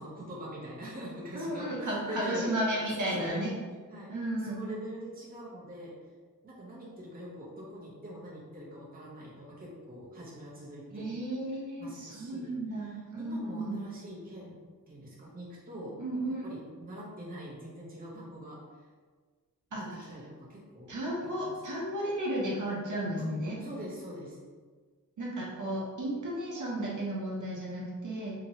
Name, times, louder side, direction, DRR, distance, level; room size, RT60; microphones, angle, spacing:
voice 1, 0.0-2.6 2.8-3.4 3.9-6.0 6.4-11.1 11.8-14.6 14.9-16.0 16.4-18.9 19.8-20.9 21.2-21.6 23.2-23.3 23.6-24.4, equal, 25° right, -6 dB, 0.7 m, -44 dB
voice 2, 1.3-3.5 4.1-4.6 10.9-13.7 16.0-16.4 19.7-20.1 20.9-23.6 25.2-28.3, right 1 dB, 60° right, -5 dB, 0.8 m, -33 dB
2.9 x 2.7 x 2.7 m, 1.5 s
wide cardioid pair, 150°, 34 cm